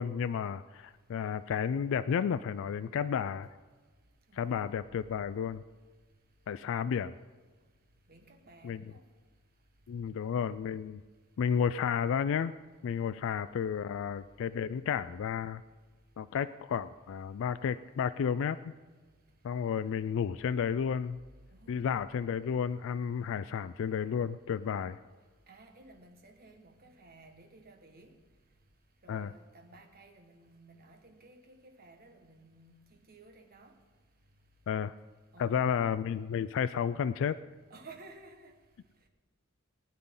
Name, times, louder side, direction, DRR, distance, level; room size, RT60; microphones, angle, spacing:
voice 1, 0.0-3.5 4.4-5.6 6.5-7.1 8.6-8.8 9.9-11.0 11.4-12.5 12.8-15.6 16.2-18.7 19.4-21.2 21.7-25.0 29.1-29.3 34.7-34.9 35.4-37.4, left 7 dB, 65° left, 13 dB, 0.3 m, -32 dB
voice 2, 4.3-4.8 8.1-9.0 21.5-21.8 25.5-28.1 29.0-33.7 35.3-35.8 37.7-38.5, right 2 dB, 45° right, 4 dB, 1.4 m, -55 dB
20.0 x 9.6 x 3.8 m, 1.4 s
head